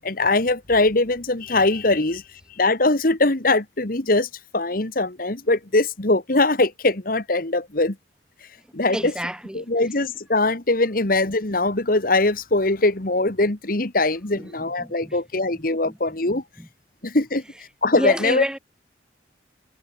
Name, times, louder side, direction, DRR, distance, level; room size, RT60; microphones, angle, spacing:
voice 1, 0.0-2.2 2.5-8.0 8.7-9.1 9.5-16.4 17.0-17.4 17.8-18.4, left 2 dB, 50° left, 1.8 m, -21 dB
voice 2, 8.9-9.7 14.3-15.2 15.5-16.0 16.3-16.7 17.9-18.6, equal, 5° right, 3.9 m, -30 dB
head